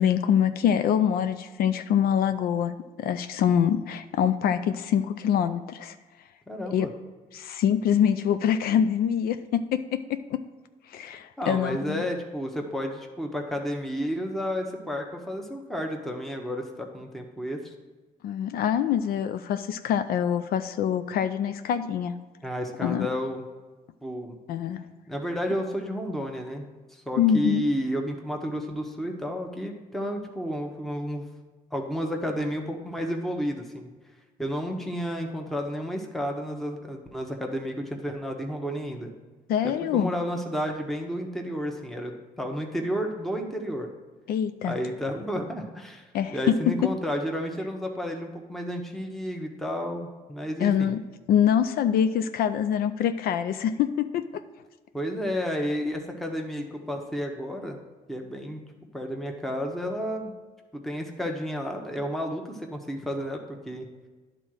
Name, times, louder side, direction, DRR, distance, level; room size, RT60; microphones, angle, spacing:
voice 1, 0.0-5.9 6.7-6.9 7.3-10.4 10.9-12.0 18.2-22.1 22.8-23.1 24.5-24.8 27.2-27.6 39.5-40.1 44.3-44.8 46.1-46.9 50.6-51.0 51.3-54.2, left 9 dB, 75° left, 10 dB, 0.4 m, -25 dB
voice 2, 6.5-6.9 11.4-17.7 22.4-23.4 24.0-24.4 25.1-26.7 26.9-31.3 31.7-33.9 34.4-39.1 39.6-43.9 44.6-46.0 46.3-50.9 54.9-57.8 58.1-58.6 58.9-60.3 60.7-63.9, equal, ahead, 2 dB, 1.0 m, -31 dB
10.0 x 3.8 x 6.3 m, 1.3 s
cardioid pair, 95°, 16 cm